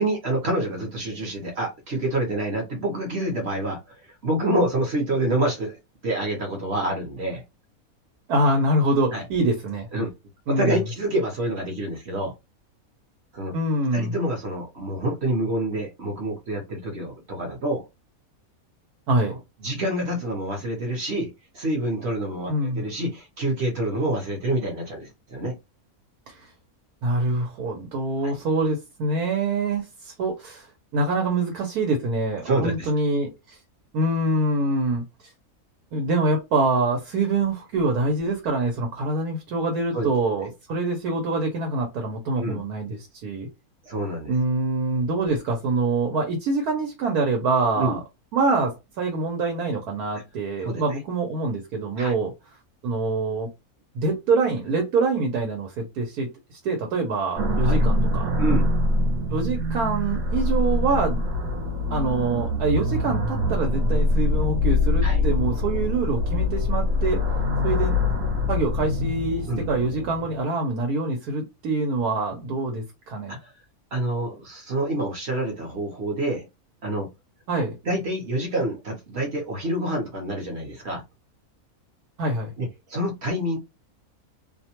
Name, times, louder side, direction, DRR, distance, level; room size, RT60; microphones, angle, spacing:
voice 1, 0.0-3.9 4.2-5.8 6.0-7.4 9.1-9.2 9.9-10.1 10.5-12.3 13.3-13.5 13.9-17.8 19.3-19.4 19.6-25.5 32.4-32.9 39.9-40.1 42.4-42.6 43.8-44.3 47.8-48.0 50.6-50.8 52.0-52.1 57.6-57.7 58.4-58.7 65.0-65.2 69.5-69.6 73.3-73.5 73.9-76.4 76.8-77.1 77.8-81.0 82.6-83.6, right 1 dB, 50° right, 1.0 m, -27 dB
voice 2, 8.3-9.9 10.5-10.8 13.5-14.2 19.1-19.4 22.5-22.8 26.3-26.5 27.0-33.6 33.9-35.3 35.9-43.5 44.3-48.0 48.3-52.3 52.8-53.5 53.9-58.3 59.3-61.3 61.9-67.2 67.6-68.0 68.5-73.4 77.5-77.8 82.2-82.5, right 2 dB, 90° right, 1.3 m, -25 dB
sound 1, 57.4-70.4, left 2 dB, 75° right, 1.2 m, -24 dB
2.7 x 2.2 x 2.8 m
omnidirectional pair, 1.6 m